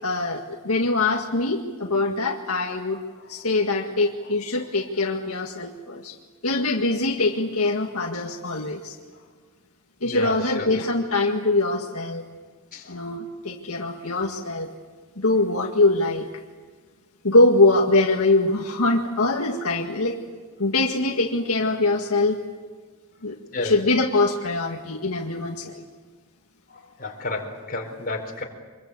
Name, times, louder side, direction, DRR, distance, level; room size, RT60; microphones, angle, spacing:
voice 1, 0.0-3.0 3.3-6.2 6.4-9.0 10.0-12.3 12.9-14.7 15.2-16.3 17.2-20.2 20.6-22.4 23.2-25.8, left 2 dB, 80° left, 1 dB, 1.9 m, -23 dB
voice 2, 10.0-10.7 12.7-13.0 23.5-23.8 26.7-28.4, left 2 dB, 40° left, 1 dB, 4.5 m, -32 dB
26.0 x 23.0 x 8.3 m, 1.4 s
head